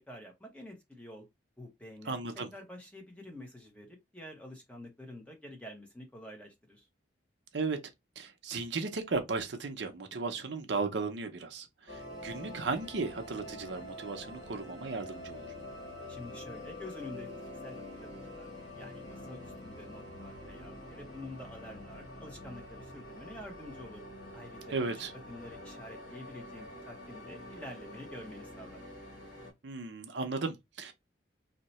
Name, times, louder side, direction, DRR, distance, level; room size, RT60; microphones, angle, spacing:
voice 1, 0.1-1.2 1.6-2.2 2.5-6.9 16.1-18.5 18.8-24.0 24.3-28.8, left 1 dB, 5° left, 0.8 m, -48 dB
voice 2, 2.1-2.5 7.5-7.8 8.2-15.4 24.7-25.1 29.6-30.9, right 4 dB, 70° right, 0.6 m, -35 dB
sound 1, 11.9-29.5, left 1 dB, 60° left, 1.2 m, -46 dB
2.7 x 2.2 x 4.0 m
head